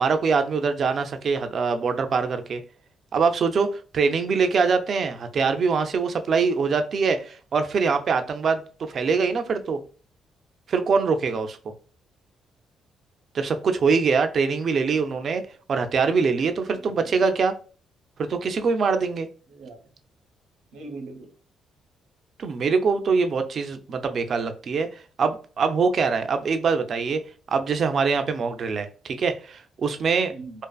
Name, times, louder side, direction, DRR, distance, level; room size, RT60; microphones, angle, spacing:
voice 1, 0.0-2.6 3.1-8.6 8.9-9.8 10.7-11.6 13.3-15.4 15.7-17.5 18.2-19.3 22.4-24.9 25.2-27.2 27.5-30.3, right 5 dB, 45° right, 0.3 m, -23 dB
voice 2, 16.7-17.1 19.5-19.9 20.7-21.3 30.3-30.6, right 3 dB, 85° right, 0.6 m, -42 dB
2.5 x 2.4 x 2.3 m
cardioid pair, 130°, 0 cm